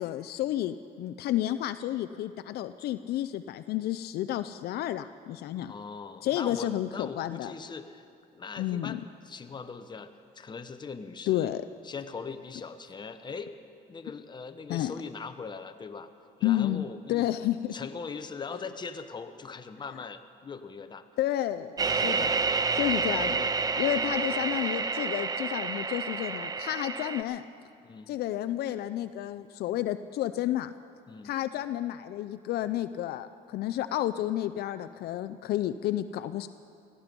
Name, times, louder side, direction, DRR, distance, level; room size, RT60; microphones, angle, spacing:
voice 1, 0.0-5.7 6.2-7.5 8.6-9.0 11.3-11.6 14.7-14.9 16.4-16.8 17.1-17.7 21.2-22.4 22.7-23.5 23.8-27.5 28.1-30.7 31.2-36.5, left 13 dB, 70° left, 10 dB, 0.5 m, -31 dB
voice 2, 5.6-8.0 8.3-11.5 11.8-13.5 13.9-16.1 16.4-17.3 17.7-21.1 27.8-28.1 31.1-31.3, left 5 dB, 25° left, 8 dB, 0.9 m, -40 dB
sound 1, 21.8-27.2, right 4 dB, 20° right, 0.6 m, -29 dB
17.5 x 14.0 x 5.3 m, 2.5 s
cardioid pair, 110°, 17 cm